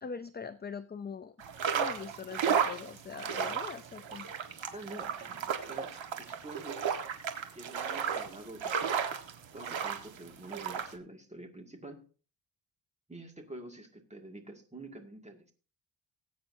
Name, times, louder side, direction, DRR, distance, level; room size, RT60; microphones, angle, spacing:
voice 1, 0.0-1.4 1.7-4.3, left 5 dB, 25° left, 11 dB, 0.5 m, -42 dB
sound 1, 1.4-10.9, right 7 dB, 85° right, 1.6 m, -34 dB
voice 2, 4.7-7.0 7.5-8.8 9.5-12.0 13.1-15.5, right 2 dB, 15° right, 3 dB, 2.2 m, -47 dB
19.5 x 8.7 x 2.7 m, 0.38 s
wide cardioid pair, 140°, 45 cm